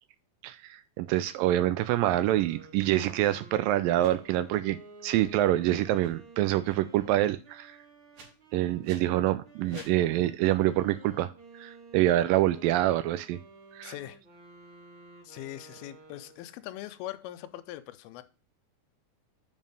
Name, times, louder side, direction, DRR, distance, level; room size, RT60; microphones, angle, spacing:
voice 1, 0.4-4.8 5.0-7.8 8.5-13.4 13.7-13.9, right 14 dB, 80° right, 2.1 m, -26 dB
sound 1, 1.8-8.9 9.4-16.6, right 2 dB, 40° right, 2.5 m, -52 dB
sound 2, 4.0-4.1 5.1-5.3 5.9-6.2 6.6-6.8 8.1-8.3 8.8-9.0 9.6-10.0, right 3 dB, 60° right, 3.8 m, -50 dB
voice 2, 13.8-14.2 15.2-18.2, left 14 dB, 90° left, 2.6 m, -41 dB
7.2 x 5.2 x 5.3 m
omnidirectional pair, 4.3 m